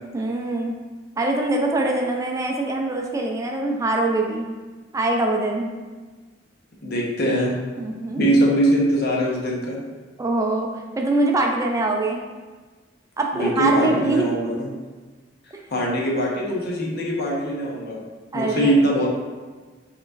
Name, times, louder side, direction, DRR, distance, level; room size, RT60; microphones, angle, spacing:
voice 1, 0.1-0.7 1.2-4.5 4.9-5.7 7.8-8.4 10.2-10.7 11.0-12.2 13.2-14.3 18.3-18.8, right 2 dB, 15° right, 1 dB, 0.3 m, -23 dB
voice 2, 6.8-7.5 8.2-9.8 13.3-14.7 15.7-18.0 18.3-19.1, right 1 dB, 55° left, -2 dB, 0.7 m, -22 dB
4.5 x 3.0 x 2.4 m, 1.4 s
head